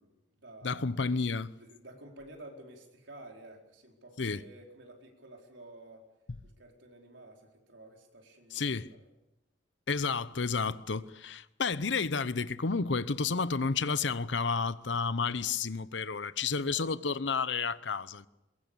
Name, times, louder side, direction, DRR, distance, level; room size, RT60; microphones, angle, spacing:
voice 1, 0.0-1.3 1.6-6.1 6.4-9.0 16.7-17.0, right 1 dB, 85° right, 4.5 m, -52 dB
voice 2, 0.6-1.5 4.2-4.4 8.5-8.9 9.9-18.3, left 4 dB, 75° left, 0.8 m, -31 dB
22.5 x 22.0 x 7.1 m
head